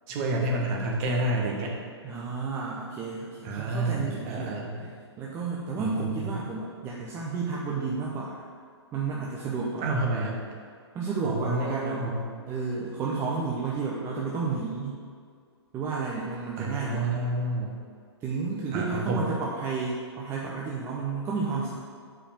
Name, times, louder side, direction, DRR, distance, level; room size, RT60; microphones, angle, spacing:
voice 1, 0.1-1.8 3.4-4.9 5.8-6.4 9.8-10.4 11.2-12.3 16.6-17.7 18.7-19.2, right 2 dB, 35° right, -1 dB, 1.3 m, -29 dB
voice 2, 2.0-4.6 5.2-8.3 8.9-9.9 10.9-12.0 12.5-15.0 15.7-17.2 18.2-21.7, right 4 dB, 15° right, -4 dB, 0.7 m, -31 dB
5.0 x 4.9 x 6.0 m, 2.1 s
figure-of-eight pair, 120°, 15 cm